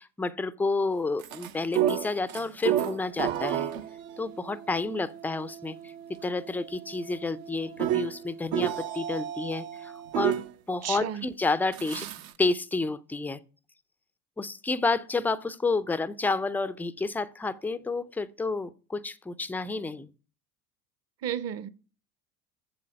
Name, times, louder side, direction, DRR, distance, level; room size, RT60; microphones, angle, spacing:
voice 1, 0.0-3.7 4.2-5.9 6.2-12.1 12.4-13.4 14.4-20.1, left 3 dB, 5° left, 0.4 m, -30 dB
sound 1, 1.2-10.5 11.7-12.3, right 12 dB, 65° right, 1.0 m, -32 dB
voice 2, 10.8-11.2 21.2-21.7, right 10 dB, 35° right, 0.8 m, -32 dB
7.8 x 7.3 x 5.7 m
hypercardioid pair, 70°, 45 cm